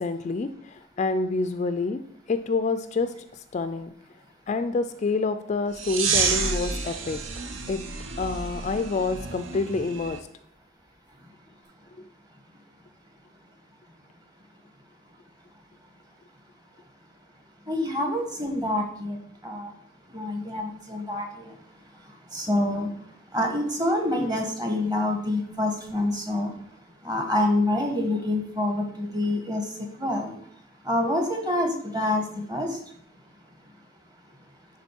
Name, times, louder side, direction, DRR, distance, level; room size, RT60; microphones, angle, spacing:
voice 1, 0.0-3.9 4.5-7.8 8.2-10.3, left 3 dB, 35° left, 10 dB, 0.3 m, -28 dB
lighters in space, 5.7-10.2, right 5 dB, 80° right, 0.8 m, -29 dB
voice 2, 17.7-19.2 19.4-19.7 20.1-21.5 22.3-22.9 23.3-26.5 27.0-29.6 30.0-30.3 30.8-32.7, left 1 dB, 20° right, 3 dB, 1.2 m, -26 dB
10.5 x 3.7 x 4.4 m, 0.69 s
head